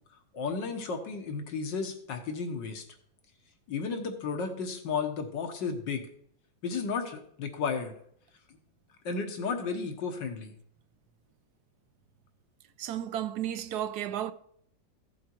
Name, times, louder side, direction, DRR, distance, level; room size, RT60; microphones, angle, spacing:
voice 1, 0.3-2.8 3.7-6.0 6.6-7.9 9.1-10.5, left 5 dB, 80° left, 1.9 m, -33 dB
voice 2, 12.8-14.3, right 11 dB, 70° right, 1.1 m, -33 dB
15.0 x 7.9 x 4.6 m
omnidirectional pair, 1.9 m